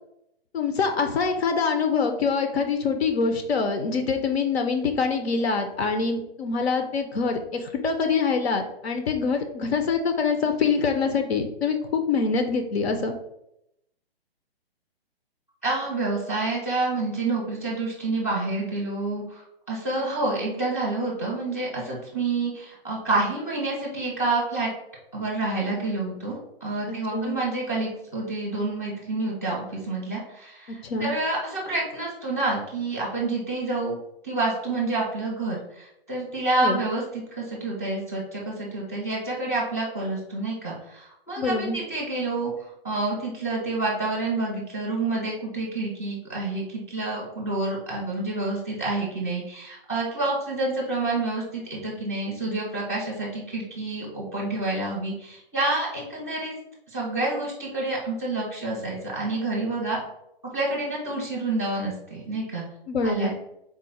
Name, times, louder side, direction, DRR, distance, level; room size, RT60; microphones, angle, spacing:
voice 1, 0.5-13.1 26.9-27.4 30.8-31.1 36.6-36.8 41.4-41.8 62.9-63.3, left 5 dB, 80° left, 6 dB, 0.6 m, -25 dB
voice 2, 15.6-24.7 25.1-34.0 34.2-56.5 56.9-60.0 60.4-62.6 63.0-63.3, right 2 dB, 15° left, -2 dB, 0.4 m, -28 dB
3.7 x 2.1 x 4.0 m, 0.81 s
hypercardioid pair, 180°, 31 cm